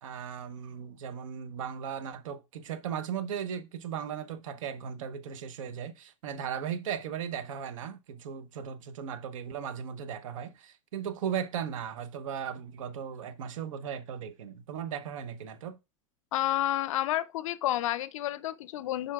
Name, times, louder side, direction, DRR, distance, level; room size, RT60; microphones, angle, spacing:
voice 1, 0.0-15.8, right 8 dB, 75° right, 0.9 m, -37 dB
voice 2, 16.3-19.1, left 13 dB, 75° left, 0.5 m, -30 dB
8.6 x 5.3 x 2.4 m
hypercardioid pair, 105°, 17 cm